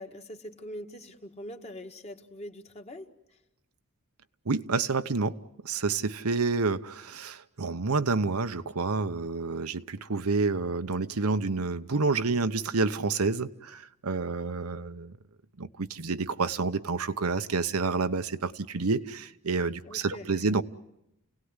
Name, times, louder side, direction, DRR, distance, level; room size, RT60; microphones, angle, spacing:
voice 1, 0.0-3.1 19.8-20.5, equal, 30° left, 1.8 m, -43 dB
voice 2, 4.5-5.4 5.6-15.1 15.6-20.6, right 4 dB, 80° right, 0.9 m, -29 dB
29.5 x 18.0 x 9.7 m
head